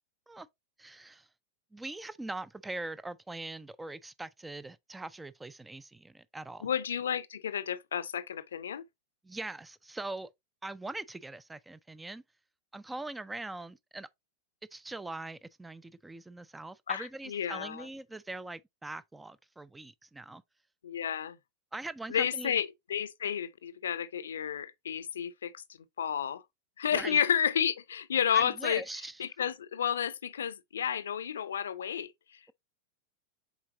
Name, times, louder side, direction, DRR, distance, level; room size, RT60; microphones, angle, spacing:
voice 1, 0.8-1.3 1.7-6.7 9.2-10.3 10.6-12.2 12.7-14.1 14.7-20.4 21.7-22.5 26.9-27.2 28.3-29.2, right 2 dB, 10° right, 0.4 m, -42 dB
voice 2, 6.6-8.8 16.9-17.9 20.8-21.4 22.1-25.6 26.0-26.4 26.8-28.8 29.2-32.1, left 8 dB, 65° left, 0.6 m, -31 dB
7.1 x 4.6 x 2.9 m
figure-of-eight pair, 90°, 0 cm